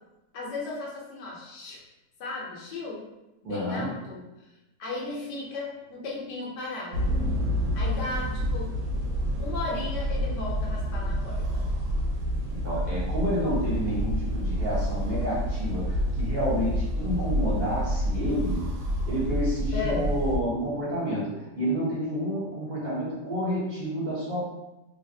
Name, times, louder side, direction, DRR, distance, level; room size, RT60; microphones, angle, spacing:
voice 1, 0.3-1.8 2.2-3.0 3.4-4.5 4.8-7.2 7.7-8.7 9.4-11.7 19.7-20.1, left 3 dB, 75° left, -4 dB, 1.3 m, -35 dB
voice 2, 3.4-3.9 12.5-18.7 19.1-24.4, equal, 35° right, -8 dB, 0.8 m, -29 dB
sound 1, 6.9-20.4, equal, 85° right, 1.3 m, -28 dB
3.1 x 2.4 x 2.6 m, 0.99 s
omnidirectional pair, 1.8 m